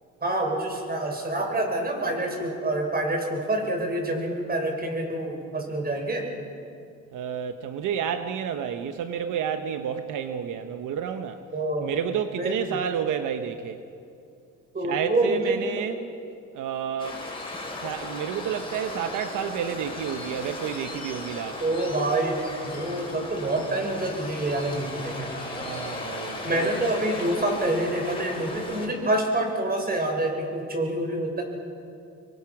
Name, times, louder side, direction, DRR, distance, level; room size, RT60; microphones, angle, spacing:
voice 1, 0.2-6.3 11.5-11.9 12.4-12.8 14.7-15.8 21.6-25.3 26.4-31.4, right 1 dB, 30° right, 2 dB, 6.1 m, -27 dB
voice 2, 7.1-11.4 11.8-13.8 14.8-16.0 16.5-17.3 17.8-21.8 25.5-26.7, right 8 dB, 85° right, 8 dB, 1.1 m, -30 dB
Waves surf, 17.0-28.9, left 2 dB, 15° left, 6.1 m, -36 dB
27.0 x 22.5 x 6.0 m, 2.5 s
cardioid pair, 90°, 30 cm